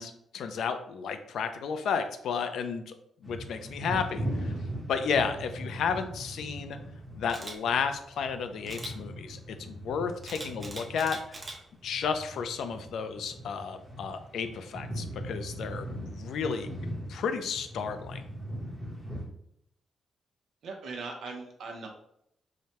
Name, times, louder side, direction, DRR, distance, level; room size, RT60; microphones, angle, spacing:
voice 1, 0.0-3.0 3.2-4.5 4.9-6.8 7.2-11.2 11.8-16.7 17.1-18.2, left 6 dB, 75° left, 9 dB, 0.4 m, -32 dB
sound 1, 3.2-11.5 11.8-19.2, equal, ahead, 0.9 m, -39 dB
Camera, 7.3-7.6 8.7-8.9 10.2-11.6 12.1-12.3, right 2 dB, 20° right, 0.6 m, -41 dB
voice 2, 20.6-21.9, right 4 dB, 65° right, 1 dB, 0.7 m, -39 dB
4.7 x 2.2 x 2.8 m, 0.75 s
cardioid pair, 145°, 0 cm